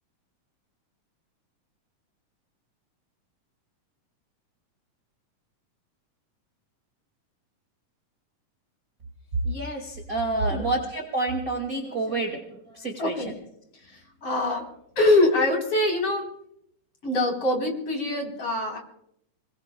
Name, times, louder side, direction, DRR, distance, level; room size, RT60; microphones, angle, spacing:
voice 1, 9.4-13.2, right 2 dB, 30° right, 1 dB, 2.0 m, -28 dB
voice 2, 13.0-13.3 14.2-14.6 15.0-16.3 17.0-18.8, left 2 dB, 45° left, 1 dB, 4.7 m, -23 dB
27.5 x 21.5 x 2.3 m, 0.73 s
omnidirectional pair, 3.7 m